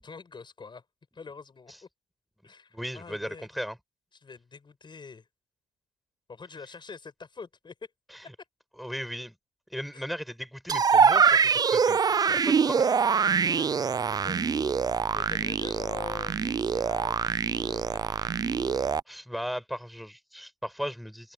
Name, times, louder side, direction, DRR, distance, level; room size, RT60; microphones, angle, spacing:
voice 1, 0.0-0.8 1.1-1.7 2.4-3.5 4.2-5.3 6.3-7.7 9.9-10.0 13.4-14.5 15.1-18.0, left 4 dB, 25° left, 6.7 m, -45 dB
voice 2, 2.4-3.8 8.1-8.2 8.8-9.3 9.7-12.9 18.7-21.3, equal, ahead, 7.3 m, -37 dB
sound 1, 10.7-19.0, right 6 dB, 25° right, 0.4 m, -24 dB
cardioid pair, 110°, 17 cm